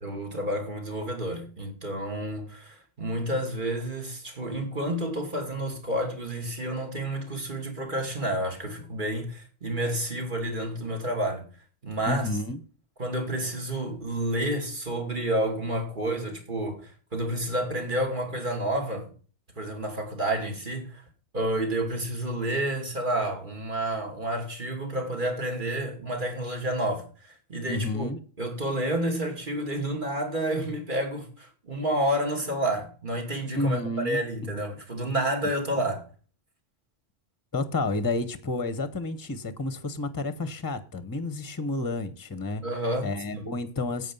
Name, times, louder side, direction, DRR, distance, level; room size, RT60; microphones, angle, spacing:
voice 1, 0.0-11.4 11.8-12.3 13.0-19.1 19.6-21.0 21.3-28.1 28.4-33.8 34.0-36.1 42.6-43.5, right 1 dB, 45° right, 2.7 m, -30 dB
voice 2, 12.1-12.6 27.7-28.2 33.5-34.6 37.5-42.6 43.0-44.1, left 2 dB, 20° left, 0.9 m, -30 dB
11.0 x 8.2 x 5.5 m
omnidirectional pair, 1.1 m